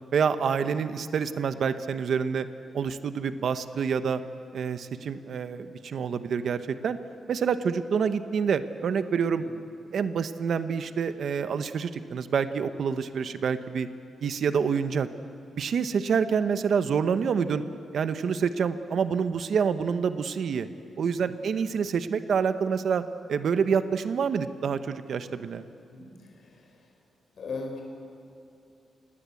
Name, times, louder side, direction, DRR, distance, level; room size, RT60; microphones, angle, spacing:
voice 1, 0.1-2.5 2.7-4.2 4.5-7.0 7.3-9.4 9.9-13.9 14.2-15.1 15.5-17.6 17.9-20.7 21.0-23.0 23.3-25.6, right 6 dB, 55° right, 11 dB, 0.9 m, -27 dB
voice 2, 25.9-26.9 27.4-27.8, left 4 dB, 50° left, 2 dB, 4.5 m, -39 dB
28.5 x 18.5 x 8.4 m, 2.6 s
wide cardioid pair, 170°, 0 cm